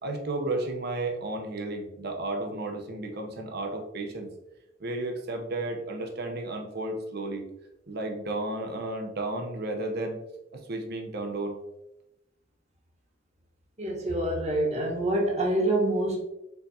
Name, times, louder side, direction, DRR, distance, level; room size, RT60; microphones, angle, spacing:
voice 1, 0.0-4.3 4.8-7.5 7.9-10.2 10.7-11.6, right 2 dB, 55° right, 3 dB, 0.8 m, -33 dB
voice 2, 13.8-16.2, right 1 dB, 35° right, -2 dB, 1.1 m, -26 dB
4.5 x 3.8 x 2.7 m, 0.92 s
head